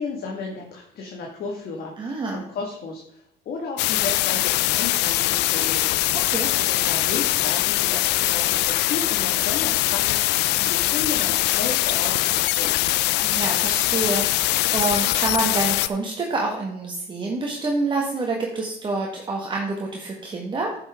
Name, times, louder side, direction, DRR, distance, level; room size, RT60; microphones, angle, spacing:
voice 1, 0.0-5.8 6.5-12.8, left 4 dB, 65° left, 0 dB, 1.9 m, -33 dB
voice 2, 2.0-2.4 6.3-6.5 13.2-20.8, right 3 dB, 30° right, -1 dB, 1.6 m, -27 dB
sound 1, 3.8-15.9, left 17 dB, 85° left, 0.4 m, -22 dB
10.5 x 7.2 x 3.6 m, 0.74 s
cardioid pair, 110°, 17 cm